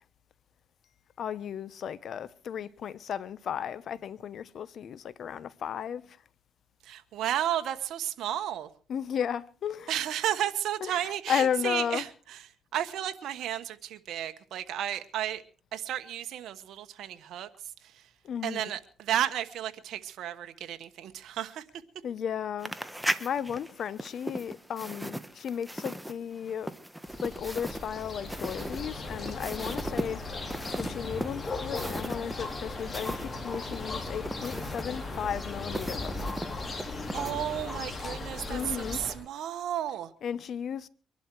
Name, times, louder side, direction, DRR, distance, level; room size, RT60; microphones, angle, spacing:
voice 1, 1.2-6.0 8.9-10.0 10.8-12.1 18.2-18.7 22.0-22.7 23.2-26.7 27.2-30.2 30.8-36.1 38.5-39.0 40.2-40.9, left 8 dB, 60° left, 1.0 m, -34 dB
voice 2, 6.8-8.7 9.9-12.5 12.7-15.4 15.7-17.5 17.8-18.0 18.4-21.6 37.1-40.1, right 11 dB, 75° right, 1.1 m, -33 dB
sound 1, 22.6-33.3 33.5-37.3, right 1 dB, 5° right, 1.3 m, -37 dB
sound 2, 27.1-39.1, left 2 dB, 35° left, 5.2 m, -37 dB
23.5 x 11.5 x 4.7 m
cardioid pair, 90°, 0 cm